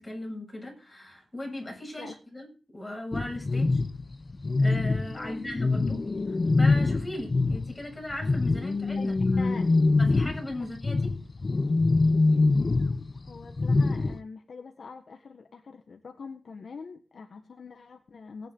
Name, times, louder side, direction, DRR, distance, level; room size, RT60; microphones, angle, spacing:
voice 1, 0.0-2.5 2.7-3.8 4.6-6.0 6.6-9.5 10.0-11.1, left 1 dB, 10° left, 1 dB, 7.1 m, -38 dB
sound 1, 3.1-7.8 8.1-14.2, left 3 dB, 35° left, 0.8 m, -24 dB
voice 2, 9.0-9.7 13.3-18.5, left 5 dB, 60° left, 4 dB, 1.6 m, -44 dB
19.0 x 10.5 x 3.8 m, 0.35 s
wide cardioid pair, 155°, 0 cm